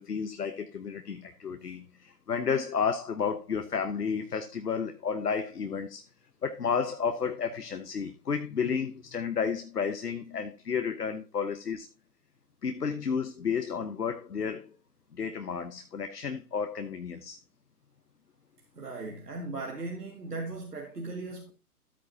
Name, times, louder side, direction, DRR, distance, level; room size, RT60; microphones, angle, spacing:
voice 1, 0.0-6.0 6.4-11.9 12.6-14.8 15.1-17.4, left 6 dB, 85° left, 1.0 m, -32 dB
voice 2, 18.8-21.5, right 3 dB, 85° right, 2.2 m, -38 dB
12.5 x 8.7 x 2.8 m
figure-of-eight pair, 135°, 46 cm